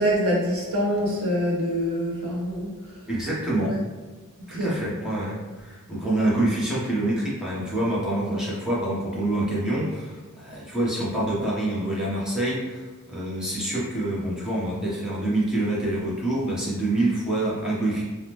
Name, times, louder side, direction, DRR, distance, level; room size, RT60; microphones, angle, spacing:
voice 1, 0.0-2.7 3.7-3.8 4.5-4.8, equal, 70° right, -5 dB, 0.9 m, -25 dB
voice 2, 3.1-3.7 4.5-18.0, right 1 dB, 5° right, -7 dB, 0.8 m, -26 dB
3.5 x 2.0 x 2.9 m, 1.3 s
head